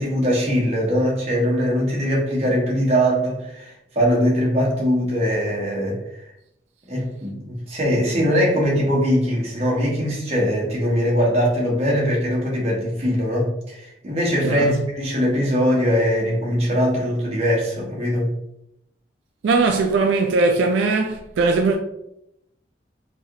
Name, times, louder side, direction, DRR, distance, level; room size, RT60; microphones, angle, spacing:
voice 1, 0.0-6.0 6.9-18.3, equal, 35° right, 0.9 m, -21 dB
voice 2, 14.4-14.7 19.4-21.8, right 3 dB, 80° right, 0.3 m, -19 dB
3.2 x 2.3 x 2.6 m
head